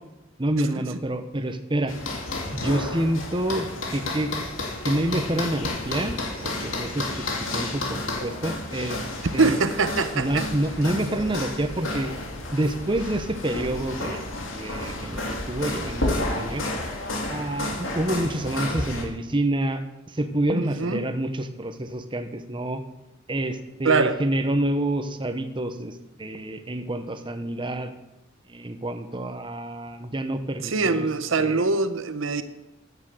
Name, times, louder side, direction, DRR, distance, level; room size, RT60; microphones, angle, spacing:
voice 1, 0.4-1.9 2.5-4.3 4.8-6.2 6.4-7.3 7.5-9.0 9.3-9.6 10.1-12.1 12.5-16.6 17.3-19.8 20.1-22.8 23.3-25.9 26.2-27.9 28.5-31.1 31.4-31.6, right 1 dB, 25° right, 7 dB, 0.9 m, -28 dB
sound 1, 1.9-19.0, left 2 dB, 80° left, 2.5 m, -31 dB
voice 2, 9.4-10.5 20.5-21.1 23.8-24.2 30.6-32.4, right 3 dB, 75° right, 11 dB, 0.9 m, -23 dB
10.0 x 9.1 x 7.6 m, 0.97 s
head